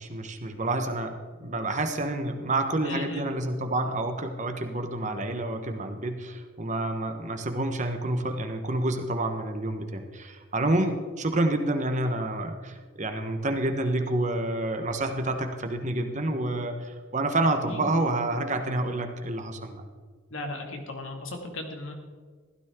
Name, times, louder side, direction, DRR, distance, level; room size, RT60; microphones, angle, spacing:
voice 1, 0.0-19.9, right 2 dB, 35° right, 6 dB, 1.2 m, -28 dB
voice 2, 2.8-3.3 17.6-17.8 20.3-21.9, left 2 dB, 75° left, 2 dB, 2.3 m, -36 dB
15.5 x 13.0 x 3.8 m, 1.5 s
head